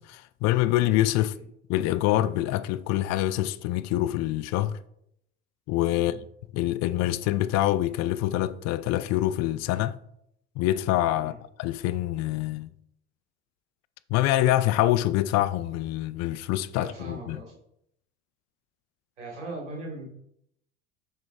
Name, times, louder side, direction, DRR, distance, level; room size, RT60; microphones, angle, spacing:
voice 1, 0.0-1.4 1.7-4.8 5.7-6.1 6.5-10.0 10.6-11.3 11.6-12.7 14.1-17.4, left 14 dB, 50° left, 0.5 m, -25 dB
voice 2, 16.7-17.6 19.2-20.0, right 2 dB, 90° right, 2.8 m, -39 dB
6.7 x 6.1 x 3.5 m
hypercardioid pair, 75°, 34 cm